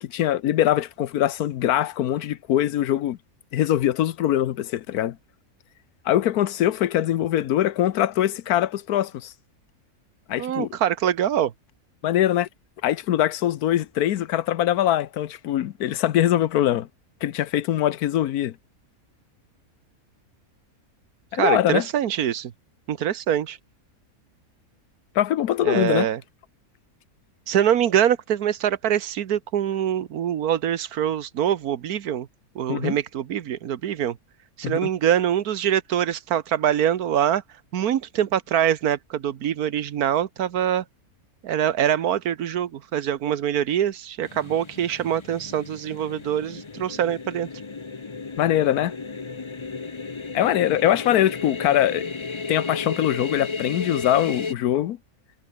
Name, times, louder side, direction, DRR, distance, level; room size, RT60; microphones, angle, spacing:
voice 1, 0.0-3.2 3.5-5.2 6.0-9.3 10.3-10.8 12.0-12.5 12.8-16.9 17.2-18.5 21.3-21.9 25.1-26.1 32.7-33.0 34.6-34.9 48.4-48.9 50.3-52.1 52.5-55.0, left 12 dB, 85° left, 1.3 m, -22 dB
voice 2, 10.4-11.5 21.3-22.5 22.9-23.6 25.6-26.2 27.5-32.3 32.5-34.2 34.6-37.4 37.7-40.8 41.4-47.5, right 10 dB, 85° right, 1.5 m, -24 dB
sound 1, 44.2-54.5, left 4 dB, 25° left, 0.7 m, -34 dB
omnidirectional pair, 1.5 m